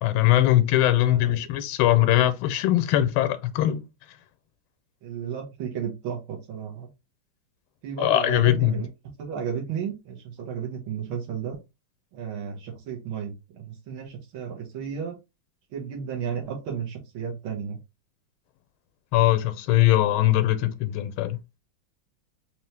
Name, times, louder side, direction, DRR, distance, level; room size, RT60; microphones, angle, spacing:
voice 1, 0.0-3.8 8.0-8.8 19.1-21.4, left 14 dB, 85° left, 1.4 m, -21 dB
voice 2, 1.0-1.4 5.0-6.9 7.8-8.9 9.2-11.6 12.1-15.2 15.7-17.8, right 7 dB, 85° right, 1.9 m, -33 dB
4.3 x 3.0 x 3.2 m
omnidirectional pair, 2.2 m